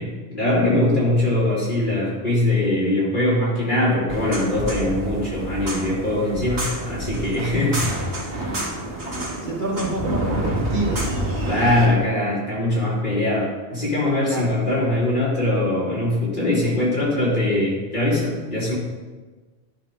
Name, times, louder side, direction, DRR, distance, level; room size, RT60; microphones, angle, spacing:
voice 1, 0.0-7.8 8.2-8.6 11.4-18.7, left 1 dB, 50° left, -7 dB, 3.4 m, -22 dB
sound 1, 4.1-11.9, right 1 dB, 65° right, 1.9 m, -28 dB
voice 2, 9.4-11.1 14.3-14.5, right 2 dB, 45° right, -1 dB, 1.5 m, -27 dB
10.5 x 5.4 x 5.4 m, 1.3 s
omnidirectional pair, 1.1 m